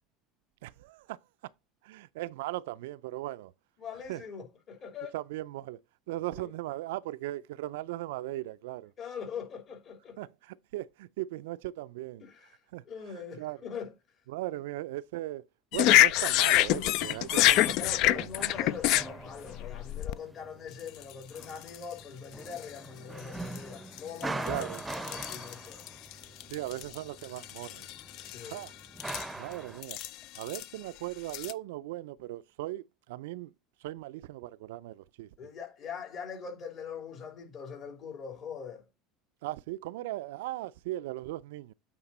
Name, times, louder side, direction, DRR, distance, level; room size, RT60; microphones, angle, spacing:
voice 1, 0.6-1.2 1.8-3.5 4.1-4.2 5.1-5.8 6.1-8.9 10.2-12.3 12.7-12.8 13.4-13.6 14.3-15.4 15.7-18.3 24.4-24.8 26.5-27.9 28.4-28.7 29.1-30.0 30.4-33.5 33.8-35.3 39.4-41.7, right 16 dB, 80° right, 0.4 m, -38 dB
voice 2, 3.8-5.2 6.4-6.5 9.0-10.2 12.2-12.5 12.8-13.9 14.5-14.6 17.3-25.8 28.3-28.6 35.4-38.8, left 6 dB, 45° left, 2.9 m, -42 dB
sound 1, 15.7-20.1 20.9-21.0 21.4-21.8 22.5-22.6 23.5-23.6 24.0-27.0 27.2-28.7 29.0-29.3 29.8-30.6 31.3-31.5, left 15 dB, 65° left, 0.4 m, -26 dB
sound 2, 17.0-29.8, right 2 dB, 15° right, 0.6 m, -43 dB
8.8 x 3.6 x 4.2 m
supercardioid pair, 95°, 0 cm